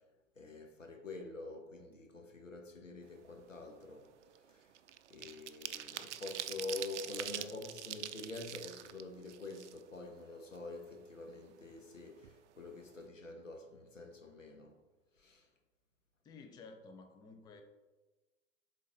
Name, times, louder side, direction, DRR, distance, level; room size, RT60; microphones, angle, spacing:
voice 1, 0.4-4.1 4.5-4.6 5.1-14.7 15.2-15.4, left 3 dB, 90° left, 1.1 m, -46 dB
sound 1, 3.2-3.4 3.7-10.2 10.5-10.6 10.9-11.9 12.2-12.4 12.7-13.0, right 11 dB, 65° right, 0.5 m, -45 dB
voice 2, 16.2-17.6, left 4 dB, 10° left, 0.4 m, -53 dB
7.2 x 3.9 x 3.9 m
figure-of-eight pair, 100°, 37 cm